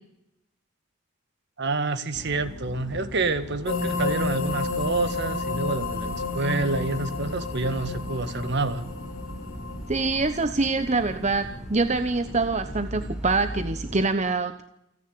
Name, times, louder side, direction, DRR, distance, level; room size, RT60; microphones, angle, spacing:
voice 1, 1.6-8.9, right 3 dB, 55° right, 11 dB, 1.7 m, -28 dB
sound 1, 2.1-14.1, equal, 5° right, 4.2 m, -38 dB
sound 2, 3.7-11.4, left 3 dB, 70° left, 5.5 m, -31 dB
voice 2, 9.9-14.6, right 3 dB, 35° right, 9 dB, 1.0 m, -25 dB
29.0 x 10.0 x 9.5 m, 0.82 s
head